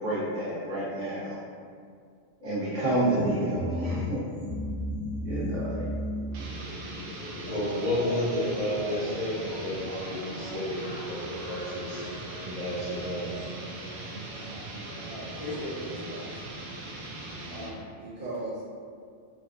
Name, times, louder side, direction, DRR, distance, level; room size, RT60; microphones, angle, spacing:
voice 1, 0.0-1.4 2.4-4.2 5.2-5.9, right 1 dB, 80° right, -10 dB, 1.4 m, -29 dB
sound 1, 3.0-16.3, left 1 dB, 60° left, 1.8 m, -37 dB
sound 2, 6.3-17.8, right 2 dB, 60° right, 0.6 m, -40 dB
voice 2, 7.5-12.0 12.4-13.3, left 1 dB, 30° left, -13 dB, 1.0 m, -31 dB
voice 3, 15.0-16.6 17.5-18.6, equal, 40° right, -11 dB, 1.4 m, -38 dB
3.9 x 2.3 x 2.4 m, 2.2 s
omnidirectional pair, 1.3 m